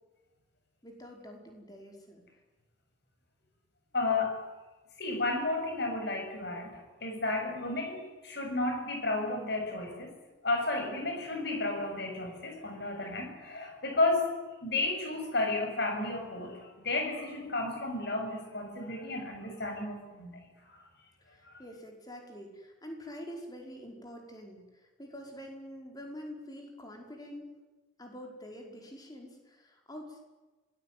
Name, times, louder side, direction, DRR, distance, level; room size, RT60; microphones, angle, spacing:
voice 1, 0.8-2.2 21.2-27.5 28.0-30.2, equal, 20° left, 2 dB, 5.2 m, -46 dB
voice 2, 3.9-4.4 5.0-10.1 10.4-14.3 14.6-20.3 20.7-20.8 21.4-21.6, left 2 dB, 55° left, 4 dB, 7.3 m, -32 dB
26.5 x 19.5 x 9.6 m, 1.2 s
head